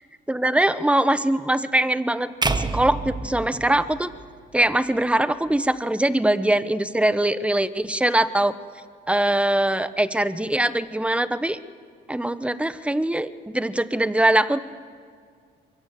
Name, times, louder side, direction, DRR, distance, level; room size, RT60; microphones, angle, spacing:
voice 1, 0.3-4.1 4.5-8.6 9.1-11.6 12.1-14.6, right 1 dB, 5° right, 14 dB, 1.0 m, -22 dB
sound 1, 2.4-4.7, right 3 dB, 20° right, 1.3 m, -28 dB
23.5 x 23.5 x 7.8 m, 2.2 s
cardioid pair, 90°, 20 cm